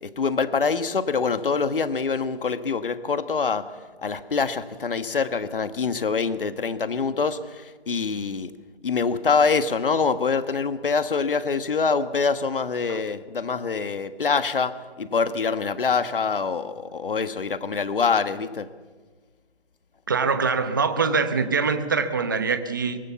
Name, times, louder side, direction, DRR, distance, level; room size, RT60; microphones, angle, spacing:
voice 1, 0.0-3.7 4.0-8.5 8.8-18.7, left 5 dB, 55° left, 1.6 m, -25 dB
voice 2, 20.1-23.0, right 5 dB, 20° right, 0.9 m, -23 dB
23.5 x 23.5 x 7.1 m
hypercardioid pair, 175°, 32 cm